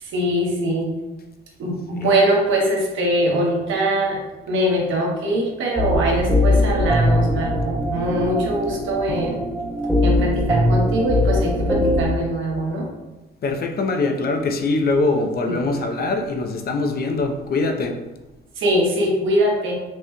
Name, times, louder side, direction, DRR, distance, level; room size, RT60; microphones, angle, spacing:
voice 1, 0.0-0.9 1.6-4.2 4.5-9.4 10.0-12.9 15.4-15.6 18.6-19.8, right 1 dB, 80° right, -1 dB, 1.1 m, -22 dB
sound 1, 5.8-12.1, left 1 dB, 5° right, 1.2 m, -20 dB
voice 2, 13.4-18.0, left 3 dB, 50° left, 5 dB, 0.6 m, -22 dB
6.1 x 3.0 x 2.3 m, 1.1 s
cardioid pair, 90°, 20 cm